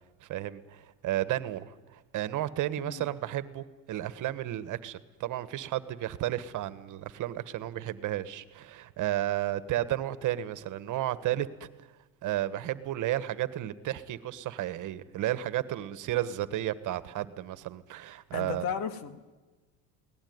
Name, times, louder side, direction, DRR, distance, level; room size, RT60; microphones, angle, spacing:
voice 1, 0.2-11.7 12.2-18.6, right 13 dB, 50° right, 13 dB, 1.4 m, -33 dB
voice 2, 18.3-19.3, left 7 dB, 65° left, 9 dB, 2.3 m, -35 dB
23.0 x 18.0 x 9.5 m, 1.2 s
supercardioid pair, 115°, 40 cm